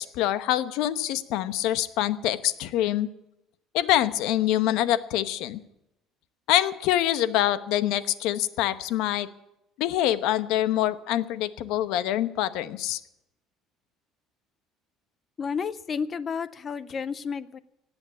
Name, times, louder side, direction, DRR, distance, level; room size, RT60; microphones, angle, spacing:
voice 1, 0.0-3.1 3.7-5.6 6.5-9.3 9.8-13.0, left 13 dB, 75° left, 14 dB, 0.9 m, -25 dB
voice 2, 15.4-17.6, left 6 dB, 25° left, 16 dB, 0.5 m, -31 dB
18.0 x 8.1 x 8.4 m, 0.83 s
cardioid pair, 160°, 0 cm